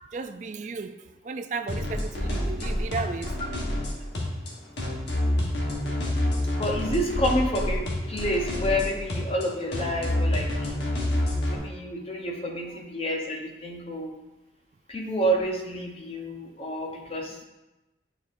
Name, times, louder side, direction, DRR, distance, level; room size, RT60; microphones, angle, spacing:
voice 1, 0.1-3.3 5.3-5.4 11.9-12.0 12.7-12.8, right 4 dB, 40° right, 9 dB, 0.3 m, -35 dB
sound 1, 1.7-11.6, left 1 dB, 75° left, 1.2 m, -28 dB
voice 2, 6.5-10.7 11.5-14.1 14.9-17.4, equal, 35° left, -1 dB, 0.9 m, -29 dB
9.3 x 4.4 x 2.6 m, 1.0 s
head